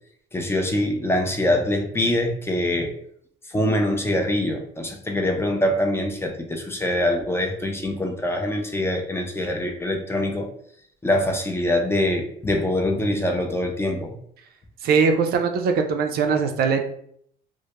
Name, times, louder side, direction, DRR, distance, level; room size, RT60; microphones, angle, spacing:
voice 1, 0.3-2.9 3.5-10.5 11.0-14.1, left 1 dB, 15° left, 3 dB, 0.4 m, -24 dB
voice 2, 14.8-16.9, right 5 dB, 65° right, 5 dB, 0.4 m, -21 dB
2.1 x 2.0 x 2.8 m, 0.64 s
cardioid pair, 110°, 17 cm